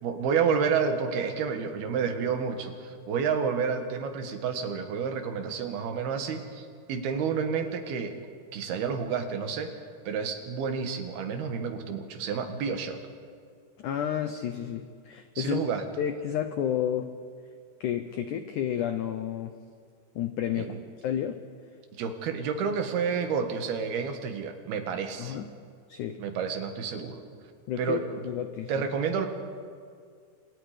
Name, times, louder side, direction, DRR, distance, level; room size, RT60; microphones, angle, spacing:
voice 1, 0.0-8.2 8.5-9.7 10.1-13.0 15.4-15.8 20.6-20.8 22.0-25.4 26.2-27.2 27.8-28.3 28.7-29.3, right 6 dB, 70° right, 6 dB, 3.4 m, -30 dB
voice 2, 13.8-15.6 16.0-17.1 17.8-19.5 20.2-21.4 25.2-25.5 25.9-26.2 27.7-28.0 28.2-28.8, left 10 dB, 85° left, 8 dB, 1.7 m, -31 dB
28.5 x 27.5 x 5.1 m, 2.1 s
omnidirectional pair, 4.8 m